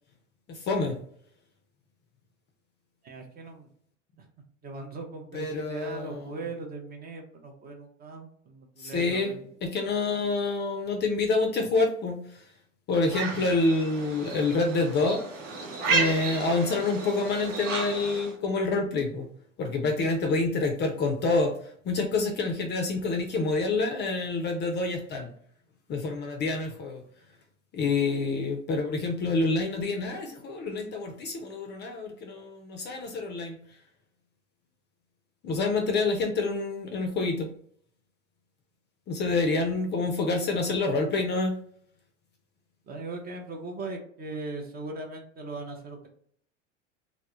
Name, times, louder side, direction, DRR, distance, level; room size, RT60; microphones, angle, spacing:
voice 1, 0.5-1.0 5.3-6.3 8.8-12.4 12.9-15.2 15.8-19.3 19.6-21.5 21.8-25.3 25.9-27.0 27.7-33.6 35.4-37.5 39.1-41.6, left 3 dB, 30° left, 3 dB, 0.4 m, -27 dB
voice 2, 3.0-3.7 4.2-4.3 4.6-9.5 42.9-46.1, right 3 dB, 25° right, 3 dB, 0.6 m, -39 dB
sound 1, 13.1-18.4, right 4 dB, 80° right, 0.7 m, -32 dB
2.1 x 2.0 x 2.9 m, 0.62 s
hypercardioid pair, 80°, 37 cm